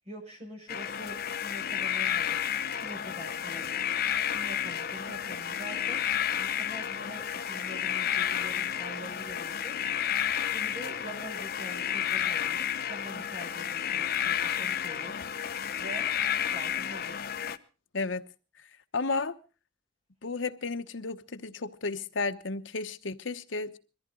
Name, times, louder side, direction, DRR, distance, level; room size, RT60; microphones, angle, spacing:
voice 1, 0.0-3.8 4.2-6.0 6.4-9.7 10.4-15.2 15.8-16.0 16.4-17.3, right 1 dB, 30° right, 6.2 m, -45 dB
sound 1, 0.7-17.6, left 9 dB, 50° left, 0.8 m, -31 dB
voice 2, 18.9-19.4 20.2-23.8, left 3 dB, 75° left, 1.1 m, -33 dB
22.5 x 14.5 x 3.8 m
head